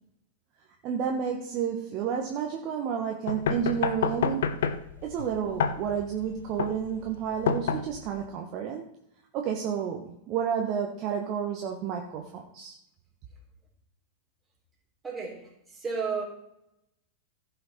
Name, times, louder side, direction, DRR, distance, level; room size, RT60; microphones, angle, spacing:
voice 1, 0.8-4.5 5.0-8.9 9.3-12.7, right 8 dB, 40° right, 2 dB, 1.2 m, -31 dB
sound 1, 3.3-8.3, left 6 dB, 60° left, 0.7 m, -29 dB
voice 2, 15.0-16.2, right 5 dB, 15° right, -2 dB, 3.5 m, -33 dB
15.5 x 5.8 x 4.3 m, 0.79 s
figure-of-eight pair, 90°, 0 cm